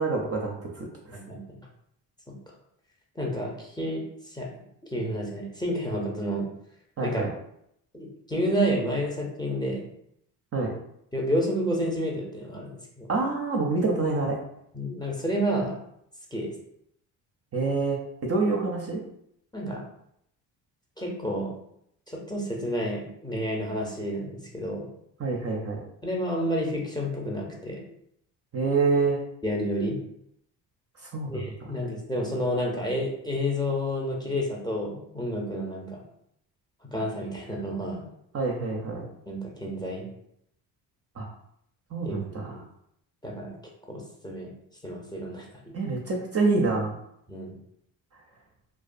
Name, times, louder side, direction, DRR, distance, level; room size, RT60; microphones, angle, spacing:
voice 1, 0.0-1.2 7.0-7.3 10.5-10.7 13.1-14.4 17.5-19.0 25.2-25.8 28.5-29.2 31.0-31.4 38.3-39.1 41.2-41.3 41.9-42.2 45.7-46.9, right 3 dB, 35° right, -1 dB, 0.5 m, -26 dB
voice 2, 1.1-1.7 3.2-4.5 4.8-6.5 7.0-7.3 7.9-9.8 11.1-13.1 14.7-15.8 16.3-16.5 19.5-19.8 21.0-21.5 22.1-24.9 26.0-27.8 29.4-30.0 31.2-36.0 36.9-38.1 39.3-40.0 42.0-42.6 43.2-43.5 43.9-44.5 44.8-45.7 47.3-47.5, equal, 10° left, -2 dB, 0.6 m, -30 dB
2.4 x 2.2 x 2.5 m, 0.74 s
supercardioid pair, 65°, 46 cm